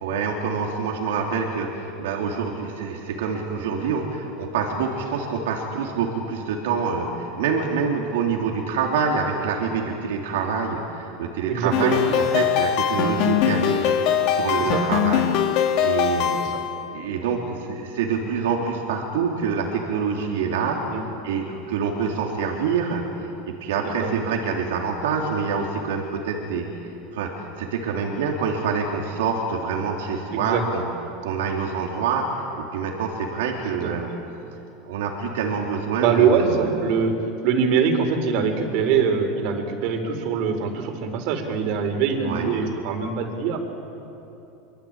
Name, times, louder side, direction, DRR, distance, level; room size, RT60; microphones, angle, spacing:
voice 1, 0.0-15.4 15.8-16.4 16.9-20.8 21.2-23.0 23.4-26.7 27.1-27.3 27.6-30.8 31.2-34.1 34.9-36.8 42.2-42.5, right 5 dB, 80° right, 0 dB, 3.4 m, -26 dB
voice 2, 11.5-12.0 14.7-14.8 16.5-16.6 20.9-21.0 23.8-24.2 30.3-30.6 33.7-33.9 36.0-37.2 37.4-43.6, right 6 dB, 65° right, 6 dB, 4.7 m, -23 dB
sound 1, 11.7-16.7, left 8 dB, 60° left, 3.1 m, -22 dB
26.0 x 25.0 x 9.1 m, 2.9 s
hypercardioid pair, 100°, 0 cm